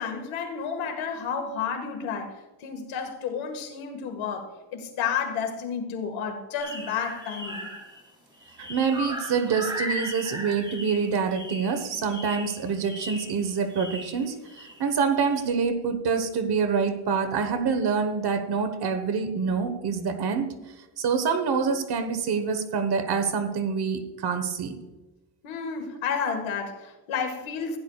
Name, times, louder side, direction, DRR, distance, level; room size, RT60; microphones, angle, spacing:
voice 1, 0.0-2.3 2.6-7.7 25.4-27.8, left 6 dB, 90° left, 1.9 m, -31 dB
sound 1, 6.6-8.1 8.3-14.9 15.3-15.5, equal, 10° right, 2.6 m, -37 dB
voice 2, 8.6-14.3 14.8-20.5 21.0-24.7, right 5 dB, 55° right, 1.3 m, -26 dB
15.5 x 10.5 x 2.4 m
cardioid pair, 125°, 47 cm